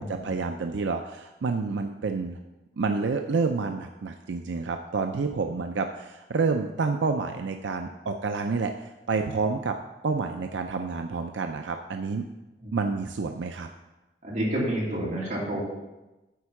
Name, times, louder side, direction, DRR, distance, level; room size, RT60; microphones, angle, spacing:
voice 1, 0.0-2.4 2.8-9.8 10.0-12.3 12.7-13.7, right 4 dB, 85° right, 5 dB, 0.5 m, -29 dB
voice 2, 14.2-15.6, right 1 dB, 45° right, -6 dB, 3.1 m, -29 dB
9.3 x 4.4 x 7.1 m, 1.0 s
head